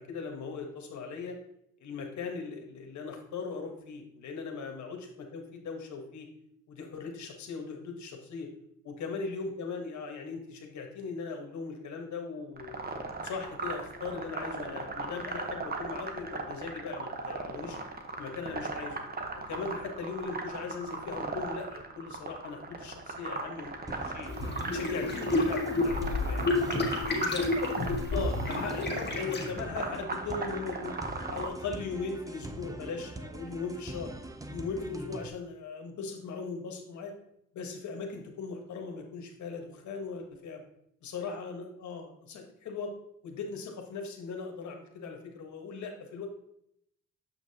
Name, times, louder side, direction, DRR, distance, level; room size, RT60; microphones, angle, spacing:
voice 1, 0.0-1.4 1.8-5.0 5.3-6.3 6.7-8.5 8.8-12.7 13.2-17.8 18.2-19.0 19.5-24.3 24.7-27.5 28.1-31.0 31.3-34.1 34.5-37.1 37.5-40.6 41.0-42.9 43.2-46.3, left 4 dB, 70° left, 3 dB, 1.4 m, -39 dB
sound 1, 12.6-31.5, right 3 dB, 30° right, 1.1 m, -38 dB
sound 2, 23.9-35.3, right 2 dB, 10° right, 0.5 m, -43 dB
sound 3, 24.3-29.5, left 2 dB, 35° left, 1.5 m, -30 dB
7.4 x 5.8 x 2.8 m, 0.74 s
cardioid pair, 90°, 30 cm